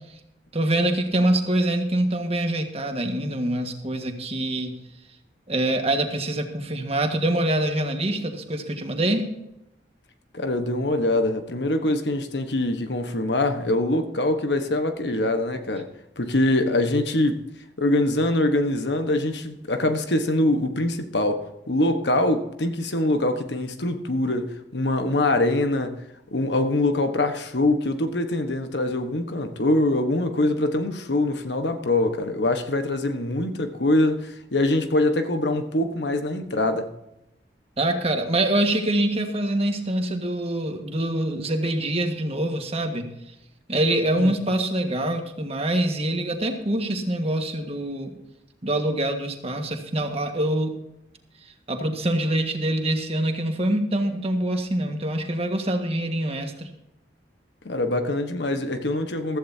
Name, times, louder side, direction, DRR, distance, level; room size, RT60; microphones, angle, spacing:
voice 1, 0.5-4.7 5.5-9.2 37.8-43.1 43.7-48.1 48.6-50.8 51.4-56.7, right 1 dB, 35° right, 1.7 m, -25 dB
voice 2, 10.3-15.9 16.2-17.4 17.8-26.0 26.3-36.9 44.2-44.3 57.6-59.4, left 1 dB, 75° left, 1.3 m, -24 dB
15.5 x 14.0 x 2.8 m
head